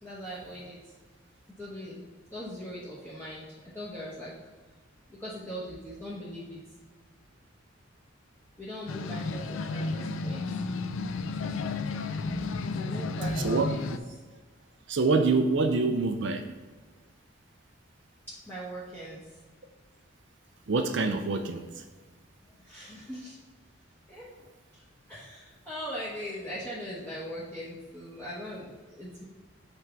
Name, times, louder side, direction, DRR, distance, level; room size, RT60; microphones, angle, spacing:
voice 1, 0.0-0.8 1.6-2.0 2.3-3.5 3.7-4.3 5.1-6.6 8.6-10.6 11.0-11.4 12.1-14.2 18.3-19.4 22.6-23.4 24.1-24.3 24.7-24.8 25.1-29.2, equal, 10° left, -9 dB, 1.1 m, -40 dB
sound 1, 8.9-14.0, left 3 dB, 75° left, 0.4 m, -32 dB
voice 2, 14.9-16.4 20.7-21.7, right 3 dB, 60° right, 6 dB, 0.5 m, -25 dB
5.9 x 3.5 x 5.7 m, 1.4 s
head